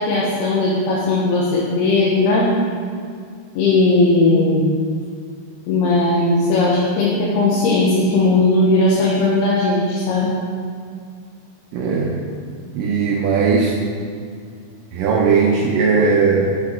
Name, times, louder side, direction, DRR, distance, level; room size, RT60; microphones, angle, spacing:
voice 1, 0.0-2.5 3.5-4.7 5.7-10.3, left 2 dB, 85° left, -6 dB, 3.0 m, -17 dB
voice 2, 11.7-12.2 12.7-13.8 14.9-16.5, right 5 dB, 80° right, -1 dB, 2.0 m, -17 dB
8.1 x 6.1 x 4.3 m, 2.2 s
omnidirectional pair, 4.4 m